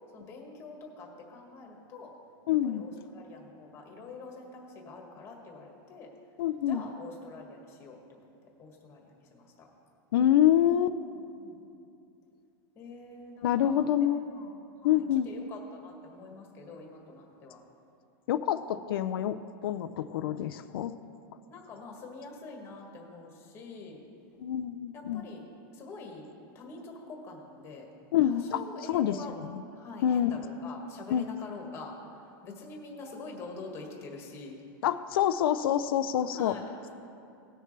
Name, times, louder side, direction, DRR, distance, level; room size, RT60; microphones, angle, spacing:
voice 1, 0.1-2.1 2.5-6.1 6.6-8.3 8.6-9.7 11.1-11.6 12.8-17.6 21.5-24.0 24.9-25.4 25.7-26.3 26.5-27.9 28.2-29.4 29.7-32.0 32.4-34.6 36.3-36.9, left 3 dB, 20° left, 0 dB, 1.8 m, -45 dB
voice 2, 2.5-2.8 6.4-6.8 10.1-11.0 13.4-14.3 14.8-15.3 18.3-20.9 24.4-25.2 28.1-28.6 28.9-29.2 30.0-30.4 31.1-31.3 34.8-36.6, left 11 dB, 75° left, 10 dB, 0.5 m, -26 dB
18.5 x 6.6 x 3.3 m, 2.6 s
supercardioid pair, 165°, 12 cm